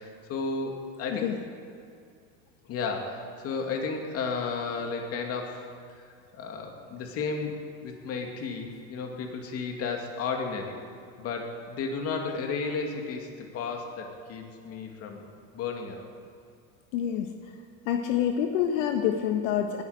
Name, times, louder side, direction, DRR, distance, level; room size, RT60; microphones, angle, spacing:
voice 1, 0.0-1.3 2.6-5.7 5.9-6.0 6.3-7.5 7.8-10.8 11.2-15.3 15.5-16.0, left 4 dB, 40° left, 2 dB, 2.4 m, -33 dB
voice 2, 16.9-17.3 17.9-19.8, left 9 dB, 75° left, 4 dB, 1.3 m, -26 dB
19.0 x 12.5 x 5.1 m, 2.4 s
supercardioid pair, 140°, 37 cm